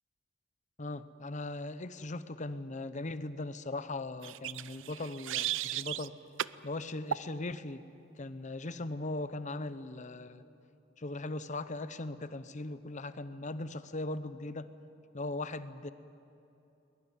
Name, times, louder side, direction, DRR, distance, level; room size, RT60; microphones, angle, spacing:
voice 1, 0.8-6.2 6.6-7.9 8.2-10.4 11.0-14.7 15.1-15.9, left 2 dB, 40° left, 13 dB, 0.9 m, -39 dB
sound 1, 4.2-6.1 6.4-6.6 7.1-7.3, right 11 dB, 80° right, 0.5 m, -35 dB
22.0 x 21.0 x 9.4 m, 3.0 s
head